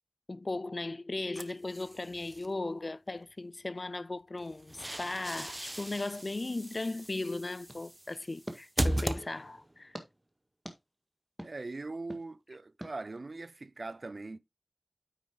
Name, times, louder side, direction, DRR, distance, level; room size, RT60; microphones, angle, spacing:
voice 1, 0.3-10.0, left 2 dB, 60° left, 0.3 m, -37 dB
sound 1, 1.4-2.5 4.4-9.8, right 1 dB, 30° right, 0.8 m, -37 dB
sound 2, 7.7-9.4 9.9-10.1 10.7-10.8 11.4-11.5 12.1-12.2 12.8-12.9, equal, 10° right, 1.7 m, -46 dB
voice 2, 11.4-14.4, right 3 dB, 75° right, 0.4 m, -41 dB
9.3 x 8.1 x 2.3 m
wide cardioid pair, 40°, 0 cm